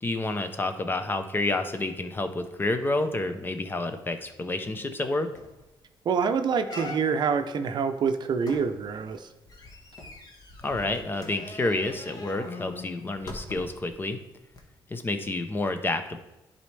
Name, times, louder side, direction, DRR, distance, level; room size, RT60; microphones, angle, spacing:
voice 1, 0.0-5.3 10.6-14.2 14.9-16.2, left 2 dB, 25° left, 8 dB, 0.7 m, -29 dB
sound 1, 4.9-5.0 5.3-5.7 6.1-6.2 6.6-7.4 8.4-13.9 14.5-14.6, left 2 dB, 45° left, 1.2 m, -42 dB
voice 2, 6.1-9.3, right 6 dB, 55° right, 8 dB, 0.6 m, -26 dB
10.5 x 4.1 x 3.3 m, 1.0 s
cardioid pair, 125°, 9 cm